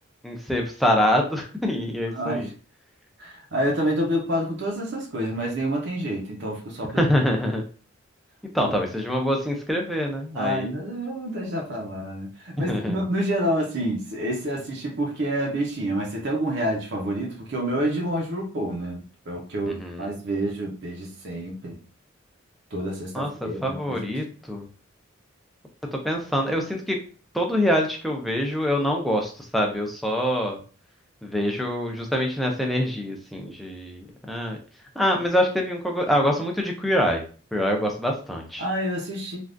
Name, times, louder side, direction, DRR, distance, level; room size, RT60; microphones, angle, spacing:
voice 1, 0.2-2.5 6.9-7.6 8.5-10.8 12.7-13.0 19.7-20.1 23.1-23.3 23.6-24.7 25.9-27.0 27.3-30.6 31.2-34.6 35.0-37.2 37.5-38.6, equal, ahead, 0 dB, 0.5 m, -25 dB
voice 2, 2.1-2.5 3.2-7.0 10.3-21.8 22.7-24.0 38.6-39.4, right 1 dB, 55° right, 0 dB, 0.7 m, -28 dB
3.4 x 2.3 x 2.5 m, 0.39 s
head